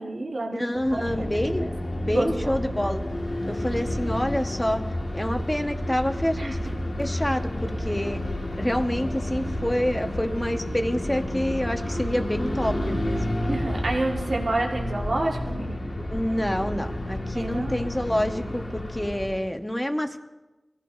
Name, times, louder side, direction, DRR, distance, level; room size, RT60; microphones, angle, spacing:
voice 1, 0.0-1.3 1.9-2.5 6.4-6.5 9.0-9.2 13.4-15.8 17.3-17.8, right 2 dB, 75° right, -1 dB, 1.7 m, -29 dB
voice 2, 0.5-1.7 2.0-3.0 3.4-4.8 5.1-6.6 7.0-8.2 8.6-13.2 16.0-20.2, equal, 15° left, 5 dB, 1.3 m, -27 dB
sound 1, 0.8-19.5, left 1 dB, 80° left, 1.8 m, -30 dB
24.5 x 15.5 x 2.7 m, 1.1 s
wide cardioid pair, 55°, 0 cm